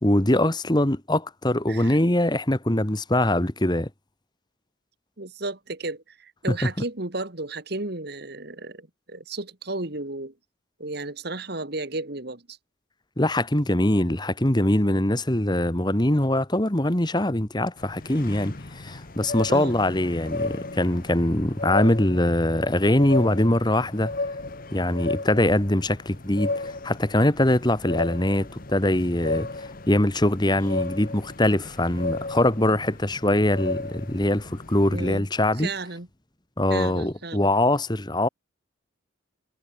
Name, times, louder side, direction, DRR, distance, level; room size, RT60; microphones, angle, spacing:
voice 1, 0.0-3.9 13.2-24.1 24.7-35.7 36.6-38.3, left 1 dB, 20° left, 1.5 m, -23 dB
voice 2, 5.2-10.3 10.8-12.6 19.5-19.8 34.9-35.3 35.6-36.1 36.7-37.5, right 2 dB, 55° right, 2.3 m, -33 dB
sound 1, 17.8-35.2, left 2 dB, 45° left, 1.3 m, -34 dB
head